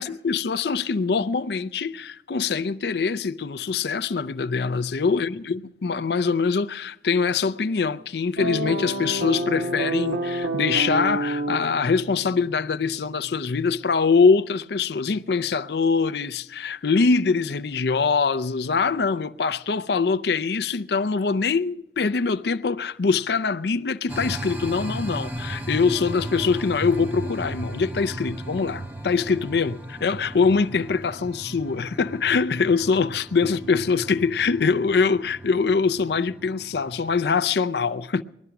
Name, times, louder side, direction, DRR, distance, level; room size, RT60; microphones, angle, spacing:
voice 1, 0.0-38.2, left 5 dB, 65° left, 0.5 m, -23 dB
sound 1, 8.4-13.4, right 2 dB, 65° right, 1.4 m, -29 dB
sound 2, 24.1-37.4, right 1 dB, 10° right, 0.8 m, -36 dB
19.5 x 12.5 x 5.8 m
head